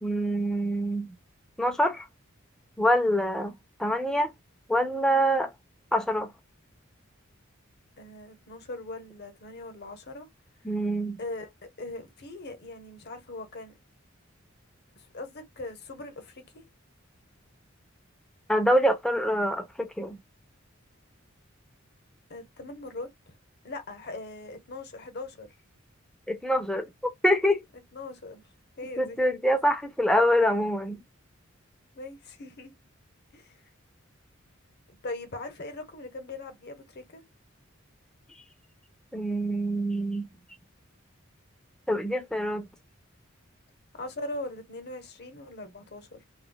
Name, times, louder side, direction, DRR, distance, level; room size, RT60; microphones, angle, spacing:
voice 1, 0.0-1.1 1.6-2.1 2.8-3.5 3.8-4.3 4.7-5.5 5.9-6.3 10.6-11.2 18.5-20.2 26.3-26.9 27.2-27.6 29.0-31.0 39.1-40.3 41.9-42.7, equal, 5° left, 0.5 m, -25 dB
voice 2, 8.0-10.3 11.2-11.5 11.8-13.7 15.0-16.7 22.3-23.3 23.6-25.5 27.9-28.4 28.8-29.2 31.9-32.7 33.3-33.6 34.9-37.2 43.9-46.2, left 2 dB, 55° left, 0.9 m, -40 dB
2.3 x 2.1 x 3.7 m
head